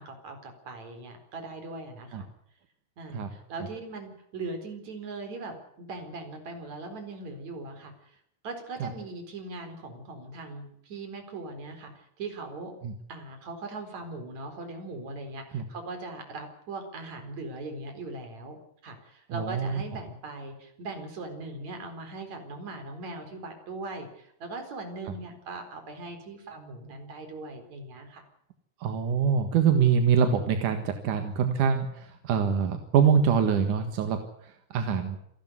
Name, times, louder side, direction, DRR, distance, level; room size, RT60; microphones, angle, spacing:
voice 1, 0.0-2.3 3.0-7.9 8.4-12.7 13.1-18.6 18.8-28.2, right 3 dB, 40° right, 6 dB, 5.2 m, -40 dB
voice 2, 19.3-19.8 25.0-25.1 28.8-35.2, right 7 dB, 55° right, 7 dB, 2.4 m, -25 dB
28.0 x 12.0 x 9.3 m, 0.73 s
omnidirectional pair, 5.5 m